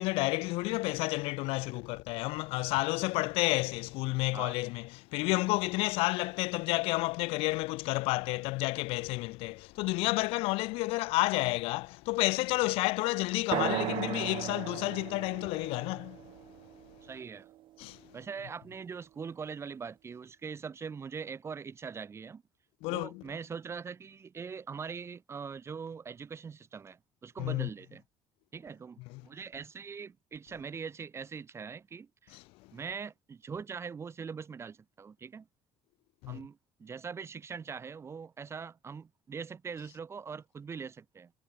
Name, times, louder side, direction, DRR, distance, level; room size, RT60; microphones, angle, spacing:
voice 1, 0.0-16.2 17.8-18.0 22.8-23.2 27.4-27.7 29.1-29.2 32.3-32.4 36.2-36.4, left 23 dB, 85° left, 3.1 m, -30 dB
sound 1, 13.5-17.4, right 14 dB, 60° right, 2.3 m, -36 dB
voice 2, 17.0-17.5 18.1-22.4 22.9-28.0 28.5-32.4 32.7-35.5 36.3-41.3, right 6 dB, 30° right, 4.0 m, -42 dB
cardioid pair, 130°, 9 cm